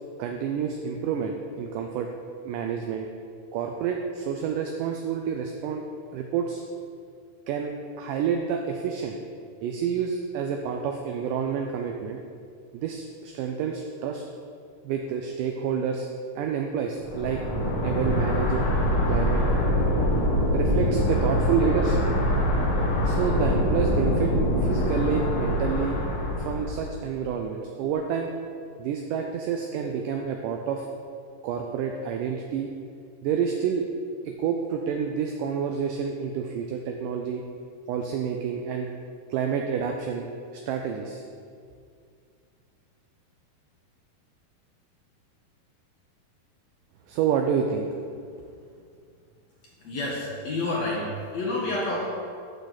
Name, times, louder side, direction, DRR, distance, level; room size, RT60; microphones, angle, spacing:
voice 1, 0.2-2.1 2.4-3.1 3.5-5.8 6.1-6.6 7.5-9.2 9.6-12.2 12.7-14.2 14.8-16.1 16.4-17.4 17.8-18.7 19.1-19.4 20.5-22.0 23.0-24.3 24.6-26.0 26.4-28.3 28.8-30.9 31.4-32.7 33.2-33.9 34.3-37.4 37.9-38.9 39.3-40.3 40.5-41.2 47.1-47.9, right 7 dB, 80° right, 3 dB, 1.9 m, -28 dB
sound 1, 17.0-26.9, equal, 85° left, 3.9 m, -24 dB
voice 2, 49.8-52.1, left 2 dB, 65° left, -4 dB, 1.8 m, -29 dB
10.5 x 6.5 x 4.0 m, 2.3 s
omnidirectional pair, 4.1 m